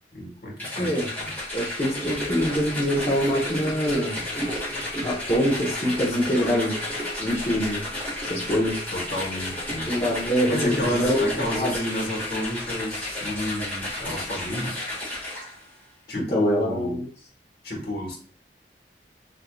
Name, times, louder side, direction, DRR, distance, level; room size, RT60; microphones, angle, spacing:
voice 1, 0.1-0.9 1.2-1.3 8.9-9.9 10.5-14.9 16.1-17.0 17.6-18.2, left 1 dB, 60° left, -1 dB, 1.3 m, -30 dB
sound 1, 0.6-15.7, left 1 dB, 10° left, 1.6 m, -33 dB
voice 2, 0.8-1.1 1.5-4.2 5.0-6.8 7.2-7.9 8.3-8.7 9.9-11.7 16.3-17.1, equal, 35° left, -7 dB, 0.8 m, -24 dB
Gurgling / Sink (filling or washing) / Trickle dribble, 1.9-13.6 13.9-14.2 14.5-14.6, right 1 dB, 15° right, 1.1 m, -36 dB
4.5 x 2.6 x 2.3 m, 0.44 s
head